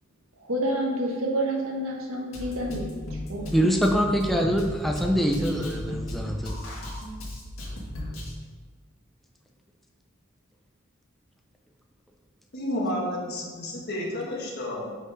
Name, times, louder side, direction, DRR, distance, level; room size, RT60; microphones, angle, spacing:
voice 1, 0.4-3.8, right 1 dB, 85° right, 0 dB, 1.4 m, -29 dB
Drum kit, 2.3-8.3, left 1 dB, 70° left, 1.8 m, -35 dB
voice 2, 3.5-6.5, equal, ahead, 1 dB, 0.5 m, -24 dB
voice 3, 12.5-14.9, left 1 dB, 50° left, -2 dB, 1.5 m, -31 dB
5.9 x 5.6 x 4.8 m, 1.5 s
head